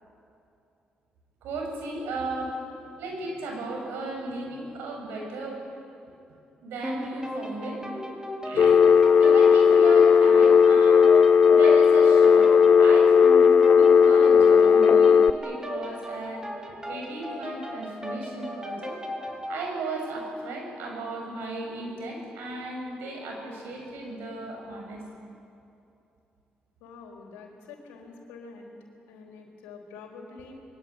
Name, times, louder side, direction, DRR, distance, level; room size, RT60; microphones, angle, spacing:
voice 1, 1.4-5.6 6.6-8.0 8.4-8.8 9.2-11.1 11.5-16.5 16.9-19.0 19.5-25.0, right 2 dB, 80° right, 1 dB, 6.7 m, -35 dB
sound 1, 6.8-19.6, equal, 20° right, 4.9 m, -36 dB
Telephone, 8.6-15.3, left 6 dB, 60° left, 0.6 m, -16 dB
voice 2, 26.8-28.7 29.1-30.5, left 4 dB, 90° left, 1 dB, 4.0 m, -46 dB
25.0 x 22.0 x 9.6 m, 2.7 s
supercardioid pair, 50°, 4 cm